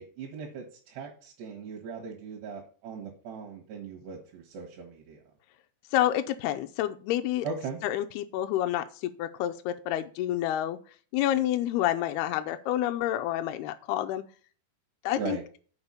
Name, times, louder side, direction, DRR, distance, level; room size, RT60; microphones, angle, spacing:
voice 1, 0.0-5.2 7.4-7.8 15.2-15.4, right 5 dB, 85° right, 0 dB, 3.5 m, -39 dB
voice 2, 5.9-7.5 7.8-10.8 11.1-14.2 15.0-15.4, left 12 dB, 80° left, 7 dB, 2.5 m, -28 dB
8.0 x 4.8 x 7.0 m, 0.41 s
omnidirectional pair, 4.6 m